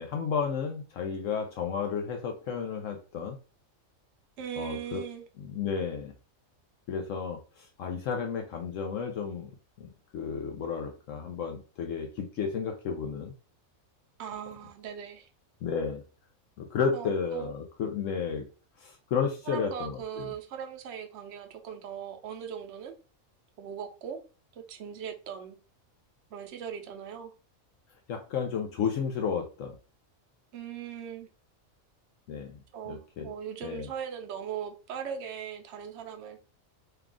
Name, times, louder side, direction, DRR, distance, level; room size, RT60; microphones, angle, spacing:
voice 1, 0.0-3.4 4.6-5.0 5.4-6.1 6.9-9.5 9.8-13.3 15.6-16.0 16.6-18.4 18.8-20.2 28.1-29.7 32.3-32.6 32.9-33.3 33.6-33.9, left 6 dB, 70° left, 1.0 m, -32 dB
voice 2, 4.4-5.2 14.2-15.3 16.9-17.5 19.5-22.9 23.6-24.2 24.5-25.6 26.3-27.3 30.5-31.3 32.7-36.4, right 8 dB, 60° right, 0.9 m, -39 dB
3.4 x 2.3 x 3.6 m
omnidirectional pair, 1.4 m